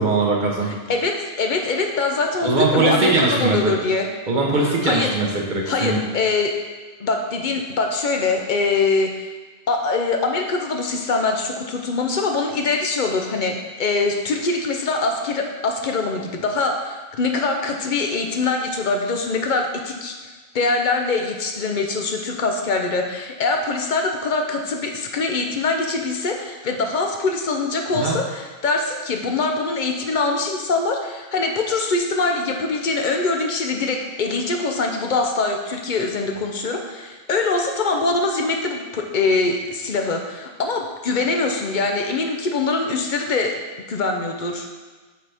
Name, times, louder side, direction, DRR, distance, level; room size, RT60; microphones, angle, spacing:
voice 1, 0.0-0.7 2.4-3.7 4.3-6.0 27.9-28.1, right 3 dB, 50° right, -1 dB, 1.2 m, -20 dB
voice 2, 0.7-4.1 4.6-5.2 5.7-6.5 7.0-9.1 9.7-20.1 20.5-43.5 43.9-44.7, left 3 dB, 55° left, 3 dB, 0.8 m, -23 dB
7.8 x 4.2 x 3.4 m, 1.3 s
omnidirectional pair, 1.0 m